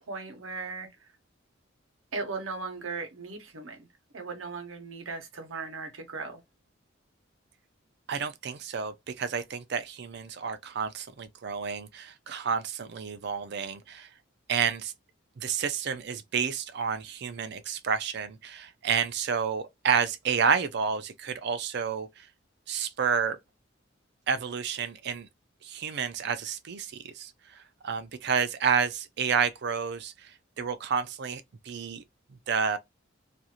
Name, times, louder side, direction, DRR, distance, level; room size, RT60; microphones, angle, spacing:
voice 1, 0.1-0.9 2.1-3.8 4.1-6.4, right 4 dB, 85° right, 0.8 m, -37 dB
voice 2, 8.1-14.1 14.5-14.9 15.4-22.3 22.7-23.4 24.3-25.3 25.6-32.0 32.5-32.8, right 6 dB, 55° right, 0.4 m, -30 dB
2.5 x 2.4 x 2.8 m
head